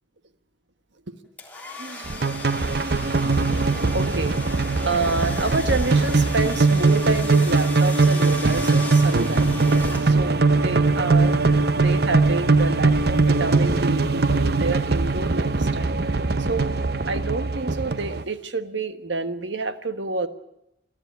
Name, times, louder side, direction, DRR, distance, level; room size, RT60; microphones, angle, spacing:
sound 1, 1.4-10.5, left 1 dB, 10° left, 3.3 m, -37 dB
voice 1, 1.8-2.2 3.9-4.4 4.8-9.5 10.0-16.2 16.5-16.7 17.1-20.3, right 3 dB, 80° right, 10 dB, 1.5 m, -28 dB
sound 2, 2.1-18.2, right 3 dB, 55° right, 0.8 m, -21 dB
28.5 x 12.5 x 9.4 m, 0.82 s
head